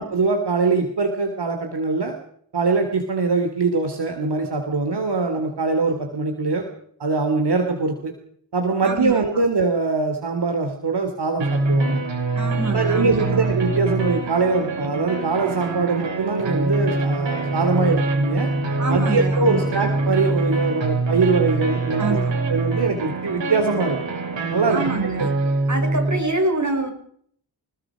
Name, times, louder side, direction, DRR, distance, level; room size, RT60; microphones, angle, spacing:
voice 1, 0.0-2.1 2.5-6.7 7.0-8.1 8.5-12.0 12.7-18.5 18.9-22.2 22.5-24.0 24.5-24.9, right 4 dB, 65° right, 5 dB, 3.2 m, -22 dB
voice 2, 8.8-9.4 12.3-13.5 18.8-19.8 22.0-22.3 24.7-25.3 25.7-26.9, right 2 dB, 40° right, 4 dB, 6.0 m, -26 dB
sound 1, 11.4-26.2, right 2 dB, 90° right, 6.4 m, -24 dB
28.0 x 20.5 x 5.1 m, 0.64 s
wide cardioid pair, 85°, 43 cm